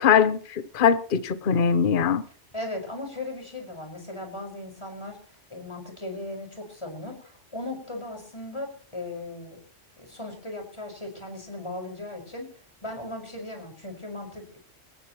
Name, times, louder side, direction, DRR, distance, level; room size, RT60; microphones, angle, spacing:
voice 1, 0.0-2.2, left 7 dB, 50° left, 1.0 m, -21 dB
voice 2, 2.5-5.2 5.5-9.6 10.0-14.6, left 2 dB, 25° left, 5.5 m, -37 dB
24.0 x 18.5 x 3.1 m
omnidirectional pair, 1.2 m